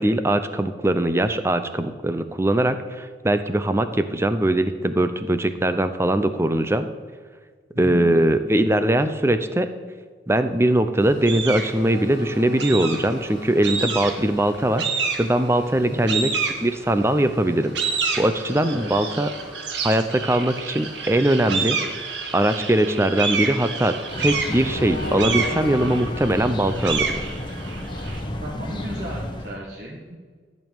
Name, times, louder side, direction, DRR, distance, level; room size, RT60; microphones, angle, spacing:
voice 1, 0.0-6.8 7.8-9.7 10.3-19.3 19.8-21.8 22.3-27.0, right 1 dB, 15° right, 10 dB, 0.7 m, -21 dB
voice 2, 7.7-8.1 15.8-16.0 18.7-19.1 28.4-30.2, equal, 50° right, -5 dB, 1.9 m, -34 dB
Train, 11.0-26.0, left 1 dB, 70° left, 1.6 m, -40 dB
sound 1, 11.3-11.8 12.6-13.2 13.6-14.3 14.8-15.5 16.1-17.0 17.5-28.2, right 5 dB, 80° right, 1.6 m, -28 dB
sound 2, 24.1-29.6, left 1 dB, 25° left, 1.2 m, -32 dB
14.0 x 5.3 x 9.0 m, 1.5 s
head